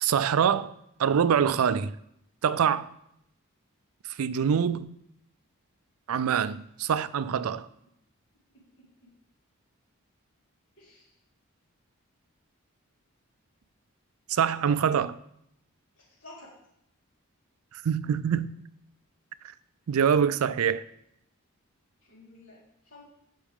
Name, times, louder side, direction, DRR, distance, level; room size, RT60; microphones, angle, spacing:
voice 1, 0.0-0.7 1.0-1.9 2.4-2.9 4.2-5.0 6.1-7.7 14.3-15.1 17.7-18.6 19.9-20.8, right 7 dB, 80° right, 0.4 m, -25 dB
voice 2, 10.8-11.1 14.6-14.9 16.0-16.5 22.1-23.0, left 2 dB, 55° left, 4.0 m, -50 dB
12.0 x 5.7 x 3.6 m
head